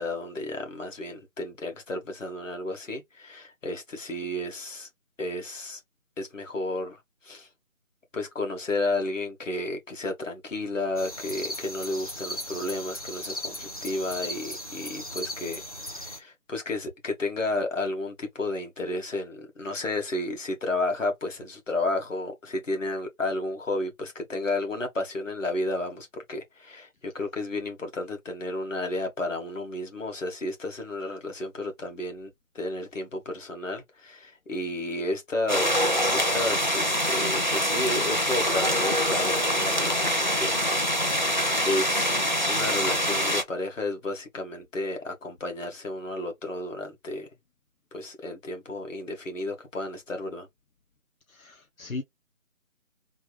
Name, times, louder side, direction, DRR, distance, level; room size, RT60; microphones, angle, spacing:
voice 1, 0.0-4.9 5.2-5.8 6.2-7.5 8.1-40.7 41.6-42.1 42.5-47.3 47.9-50.5, left 2 dB, 65° left, 1.7 m, -32 dB
sound 1, 11.0-16.2, left 1 dB, 30° left, 0.6 m, -37 dB
sound 2, 35.5-43.4, equal, 40° right, 0.4 m, -25 dB
voice 2, 51.3-52.0, left 3 dB, 90° left, 1.0 m, -37 dB
3.4 x 2.5 x 3.2 m
figure-of-eight pair, 160°, 41 cm